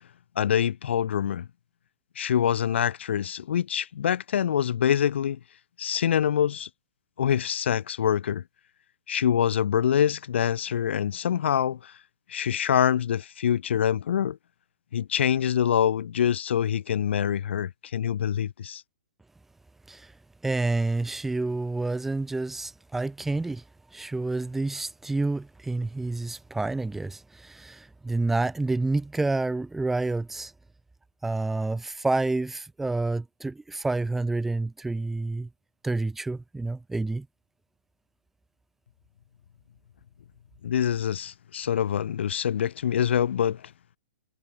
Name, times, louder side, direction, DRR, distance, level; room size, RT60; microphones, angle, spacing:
voice 1, 0.4-1.5 2.2-5.4 5.8-6.7 7.2-8.4 9.1-11.9 12.3-14.4 14.9-18.8 40.6-43.6, left 9 dB, 65° left, 7.0 m, -25 dB
voice 2, 20.4-23.6 23.9-30.5 31.2-35.5 35.8-37.3, right 2 dB, 5° right, 3.9 m, -29 dB
hypercardioid pair, 170°, 7 cm